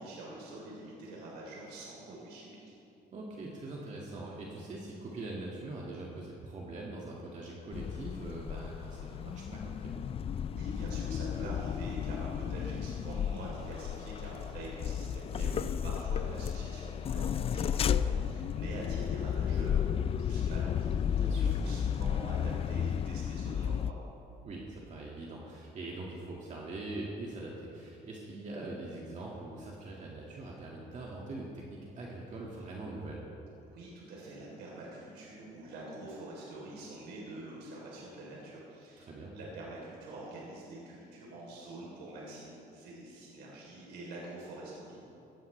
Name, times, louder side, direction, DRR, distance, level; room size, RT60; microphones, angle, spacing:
voice 1, 0.0-2.8 10.5-15.5 15.8-24.0 33.7-45.0, right 2 dB, 75° right, -4 dB, 3.7 m, -45 dB
voice 2, 3.1-10.1 15.3-15.8 21.2-21.6 24.4-31.7 32.0-33.3 39.0-39.4, right 2 dB, 45° right, -3 dB, 2.1 m, -42 dB
sound 1, 7.7-23.9, left 8 dB, 35° left, 0.4 m, -33 dB
16.5 x 14.5 x 3.4 m, 2.8 s
cardioid pair, 110°, 17 cm